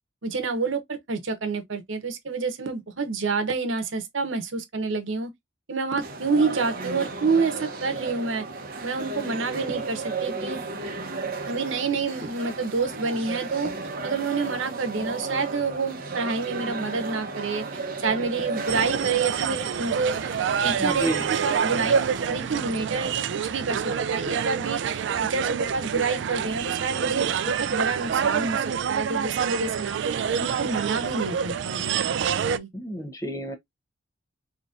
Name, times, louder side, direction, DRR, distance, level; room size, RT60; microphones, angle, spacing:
voice 1, 0.2-5.3 5.7-8.5 8.8-10.6 11.5-13.7 14.0-17.6 18.0-20.2 20.6-21.9 22.3-27.3 27.6-30.0 30.4-32.1 32.5-32.7, right 4 dB, 85° right, 0.9 m, -28 dB
sound 1, 6.0-22.3, right 3 dB, 50° right, 0.9 m, -34 dB
sound 2, 18.7-32.6, right 7 dB, 65° right, 0.3 m, -27 dB
voice 2, 20.8-21.3 32.7-33.5, right 1 dB, 15° left, 0.8 m, -30 dB
4.0 x 2.9 x 2.5 m
head